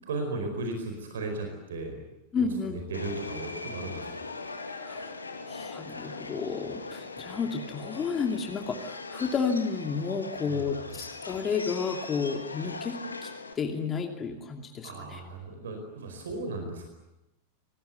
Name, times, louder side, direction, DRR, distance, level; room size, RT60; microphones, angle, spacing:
voice 1, 0.1-2.0 2.4-4.2 10.5-10.9 14.8-16.9, right 2 dB, 65° right, 5 dB, 4.8 m, -36 dB
voice 2, 2.3-2.9 4.8-5.1 5.5-13.3 13.5-15.2, left 5 dB, 25° left, 3 dB, 2.7 m, -31 dB
Subway metro underground, 2.9-13.5, left 3 dB, 80° left, 2.5 m, -40 dB
27.5 x 20.0 x 9.3 m, 0.92 s
figure-of-eight pair, 90°, 0 cm